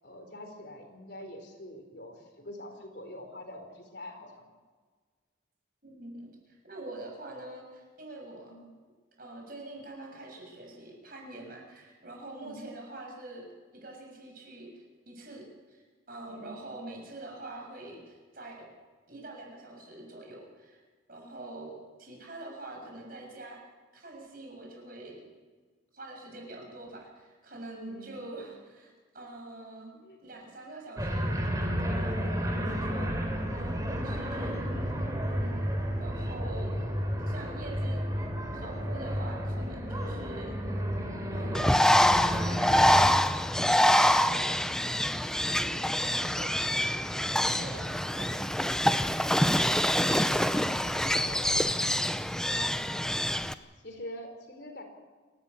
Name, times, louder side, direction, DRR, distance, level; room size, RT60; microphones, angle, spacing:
voice 1, 0.0-4.3 8.4-8.6 12.3-12.6 16.3-16.6 27.9-28.2 29.9-30.2 51.2-51.7 52.4-52.7 53.8-54.8, left 1 dB, 55° left, 4 dB, 4.0 m, -45 dB
voice 2, 5.8-8.5 9.2-18.7 19.1-20.8 21.1-23.6 23.9-25.2 25.9-29.9 30.2-31.3 31.9-33.1 33.5-34.8 35.3-35.6 36.0-36.8 37.2-38.1 38.5-40.6 41.3-42.2 42.6-44.7 45.5-46.9 47.3-48.6, right 2 dB, 45° right, 0 dB, 7.4 m, -45 dB
sound 1, 31.0-43.2, equal, 20° right, 3.2 m, -31 dB
Bird, 41.5-53.5, left 1 dB, 5° left, 0.6 m, -25 dB
29.0 x 12.5 x 8.5 m, 1.4 s
head